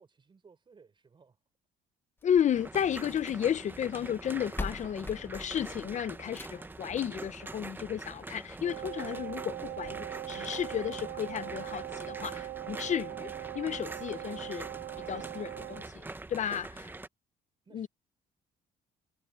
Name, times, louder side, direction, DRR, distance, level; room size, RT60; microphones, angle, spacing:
voice 1, 0.0-1.4 17.6-17.9, right 5 dB, 30° right, 4.8 m, -60 dB
voice 2, 2.2-14.7 15.0-16.9 17.7-17.9, left 9 dB, 45° left, 0.9 m, -33 dB
sound 1, 2.2-3.4 4.2-4.3 4.6-6.8 8.2-8.3 8.8-8.9 9.1-9.2 9.8-9.9, left 2 dB, 15° left, 1.3 m, -42 dB
sound 2, 2.5-17.1, right 2 dB, 10° right, 0.9 m, -44 dB
Wind instrument woodwind instrument, 8.6-15.9, right 16 dB, 60° right, 0.9 m, -41 dB
cardioid pair, 110°, 17 cm